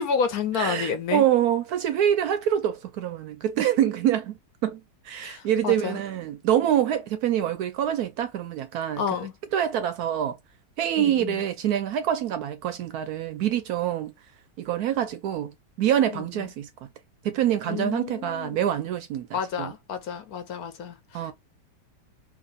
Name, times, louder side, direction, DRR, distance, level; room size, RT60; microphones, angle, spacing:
voice 1, 0.0-1.2 5.2-6.0 9.0-9.3 11.0-11.4 16.1-16.2 17.7-18.6 19.3-21.3, left 6 dB, 65° left, 1.1 m, -30 dB
voice 2, 0.6-4.4 4.6-4.8 5.0-9.0 9.5-10.4 10.8-14.1 14.6-16.9 17.2-19.7 21.1-21.3, right 10 dB, 70° right, 1.0 m, -25 dB
2.9 x 2.8 x 3.9 m
omnidirectional pair, 1.9 m